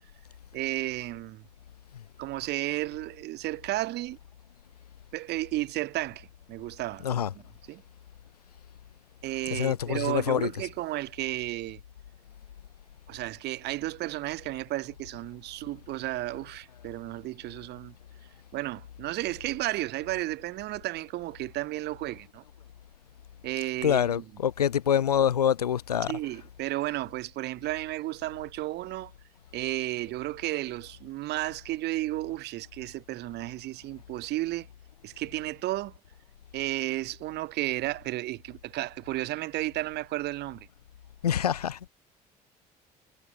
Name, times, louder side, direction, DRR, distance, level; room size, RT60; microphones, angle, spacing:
voice 1, 0.5-1.4 2.2-4.2 5.1-7.2 7.7-7.8 9.2-11.8 13.1-17.9 18.5-22.4 23.4-24.2 26.1-29.1 29.5-34.7 35.0-35.9 36.5-40.7, right 17 dB, 60° right, 1.4 m, -33 dB
voice 2, 7.0-7.3 9.5-10.5 23.8-26.2 41.2-41.9, left 9 dB, 90° left, 0.5 m, -26 dB
figure-of-eight pair, 55°, 19 cm